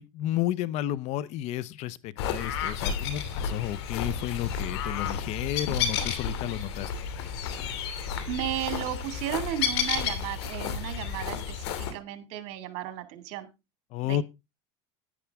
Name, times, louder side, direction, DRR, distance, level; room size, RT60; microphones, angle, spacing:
voice 1, 0.0-6.9 13.9-14.2, left 13 dB, 55° left, 0.7 m, -32 dB
sound 1, 2.2-11.9, left 7 dB, 80° left, 2.5 m, -31 dB
voice 2, 8.3-13.5 14.0-14.2, right 13 dB, 65° right, 2.2 m, -34 dB
11.0 x 10.0 x 3.5 m
supercardioid pair, 115°, 14 cm